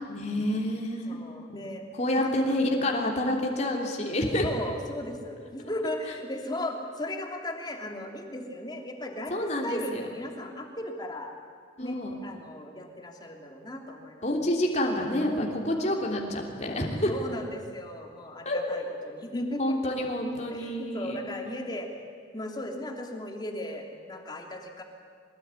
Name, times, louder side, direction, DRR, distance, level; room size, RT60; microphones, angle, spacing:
voice 1, 0.1-1.2 1.5-1.6 1.9-4.5 9.3-10.0 11.8-12.1 14.2-17.1 18.4-18.6 19.6-21.2, left 1 dB, 40° left, 0 dB, 3.2 m, -28 dB
voice 2, 1.1-1.8 2.2-2.3 4.4-11.3 11.8-14.3 15.8-16.0 17.1-19.8 20.5-21.9 22.3-24.8, left 1 dB, 25° left, 2 dB, 3.0 m, -36 dB
23.5 x 20.0 x 9.8 m, 2.1 s
head